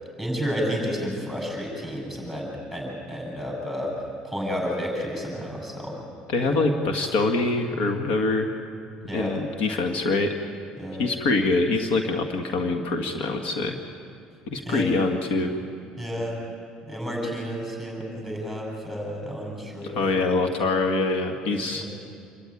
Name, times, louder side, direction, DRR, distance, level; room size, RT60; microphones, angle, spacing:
voice 1, 0.2-3.9 4.2-6.0 6.4-6.6 9.1-9.4 10.8-11.1 14.7-14.9 16.0-16.4 16.9-20.1 21.7-21.9, equal, 5° left, -1 dB, 7.8 m, -31 dB
voice 2, 6.3-8.5 9.1-10.3 11.0-13.8 14.5-15.5 19.8-21.8, left 3 dB, 75° left, 4 dB, 1.8 m, -24 dB
27.0 x 13.5 x 9.9 m, 2.4 s
cardioid pair, 125°, 3 cm